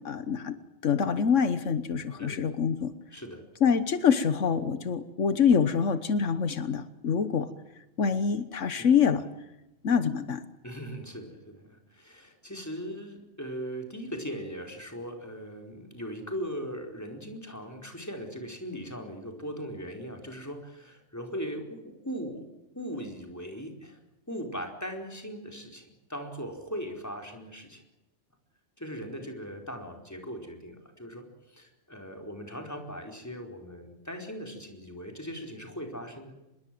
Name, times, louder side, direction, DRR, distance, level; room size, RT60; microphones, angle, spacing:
voice 1, 0.0-0.6 0.8-2.9 3.6-7.5 8.0-9.2 9.8-10.4, left 6 dB, 80° left, 12 dB, 1.5 m, -25 dB
voice 2, 3.1-3.4 8.8-8.9 10.6-22.4 22.7-24.0 24.3-27.8 28.8-36.3, equal, 15° left, 3 dB, 4.6 m, -39 dB
26.5 x 21.5 x 7.7 m, 0.95 s
omnidirectional pair, 1.2 m